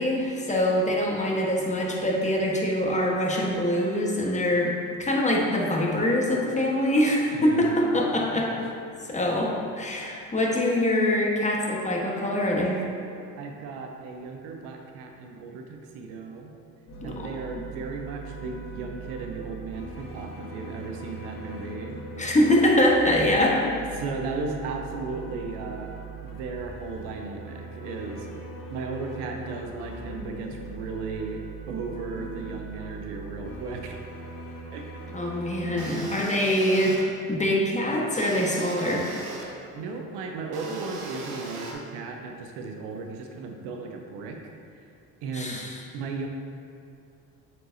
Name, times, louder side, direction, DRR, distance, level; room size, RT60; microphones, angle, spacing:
voice 1, 0.0-4.7 5.0-8.5 9.1-12.8 17.0-17.3 22.2-23.6 35.1-37.0 37.3-39.1 45.3-45.7, left 1 dB, 15° left, -2 dB, 1.2 m, -24 dB
voice 2, 7.3-8.6 13.4-16.5 17.0-22.0 23.9-25.9 26.2-28.3 28.7-34.0 34.7-34.8 39.7-44.5 45.2-46.3, right 4 dB, 80° right, 3 dB, 0.8 m, -36 dB
sound 1, 16.9-35.9, right 2 dB, 50° left, 1.2 m, -40 dB
sound 2, 35.8-37.0 38.1-39.5 40.5-41.7, right 3 dB, 65° right, 1.1 m, -38 dB
7.7 x 4.6 x 2.7 m, 2.5 s
hypercardioid pair, 60°, 41 cm